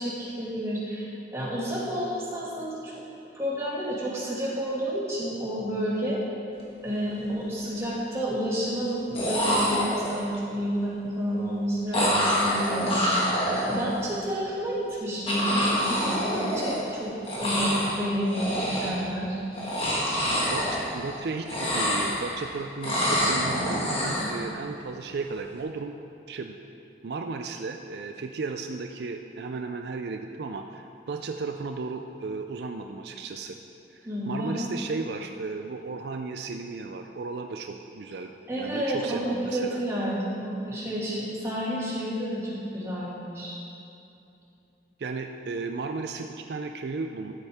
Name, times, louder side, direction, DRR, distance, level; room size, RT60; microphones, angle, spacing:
voice 1, 0.0-3.0 3.3-6.2 6.8-17.1 17.4-19.4 19.8-20.0 34.0-34.6 38.5-43.5, equal, 15° right, -7 dB, 2.2 m, -30 dB
sound 1, 6.7-6.9 7.2-7.8 8.9-9.0 9.1-10.4 11.9-14.1 15.3-17.0 17.2-18.0 18.3-19.1 19.5-21.2 21.4-22.4 22.8-24.4, equal, 30° left, 1.8 m, -26 dB
voice 2, 20.5-25.9 26.3-26.6 27.0-33.6 33.9-39.8 45.0-47.3, right 4 dB, 65° right, 5 dB, 0.4 m, -35 dB
13.5 x 8.0 x 3.6 m, 2.7 s
head